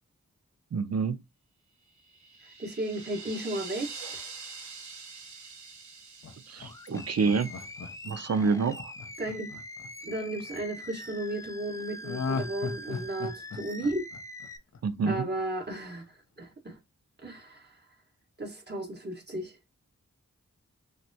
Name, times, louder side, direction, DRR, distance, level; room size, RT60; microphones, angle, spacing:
voice 1, 0.7-1.2 6.5-7.5 8.0-8.9 14.8-15.3, right 5 dB, 55° right, 0.5 m, -27 dB
sound 1, 2.0-8.2, right 4 dB, 75° right, 0.9 m, -45 dB
voice 2, 2.6-3.9 9.2-9.5 10.0-14.0 15.1-16.0 16.4-16.8 17.2-17.8 18.4-19.5, right 1 dB, 35° right, 1.4 m, -34 dB
Laughter, 6.2-10.5 12.0-15.0 15.4-15.5, left 4 dB, 65° left, 0.6 m, -37 dB
Animal, 6.6-14.6, left 1 dB, 10° left, 0.4 m, -44 dB
5.8 x 2.1 x 2.7 m
wide cardioid pair, 60°, 30 cm